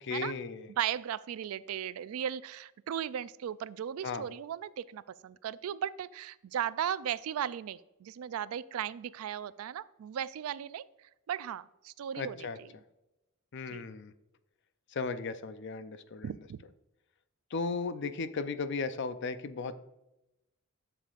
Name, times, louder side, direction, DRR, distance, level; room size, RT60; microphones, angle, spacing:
voice 1, 0.0-0.7 4.0-4.3 12.1-12.6 13.5-14.1 14.9-16.5 17.5-19.8, left 4 dB, 55° left, 12 dB, 0.5 m, -36 dB
voice 2, 0.8-10.9 11.3-12.7 13.7-13.9 16.2-16.6, right 9 dB, 85° right, 17 dB, 0.3 m, -36 dB
11.0 x 6.9 x 2.4 m, 0.95 s
head